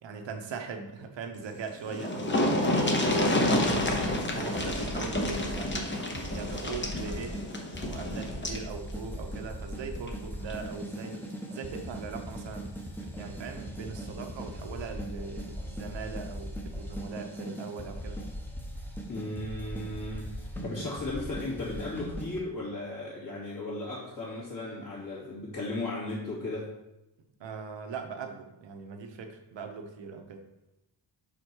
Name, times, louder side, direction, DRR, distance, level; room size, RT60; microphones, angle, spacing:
voice 1, 0.0-2.5 3.0-3.8 4.3-5.9 6.2-7.4 7.9-12.7 13.0-18.2 27.4-30.4, right 5 dB, 80° right, 4 dB, 1.1 m, -40 dB
sound 1, 1.5-1.6 1.8-8.7 10.0-10.1 10.5-10.6, left 1 dB, 25° left, 1.0 m, -29 dB
sound 2, 3.7-22.4, equal, 5° left, 1.0 m, -39 dB
voice 2, 19.1-26.7, left 2 dB, 45° left, -12 dB, 2.6 m, -36 dB
5.5 x 5.1 x 4.6 m, 0.94 s
cardioid pair, 105°, 44 cm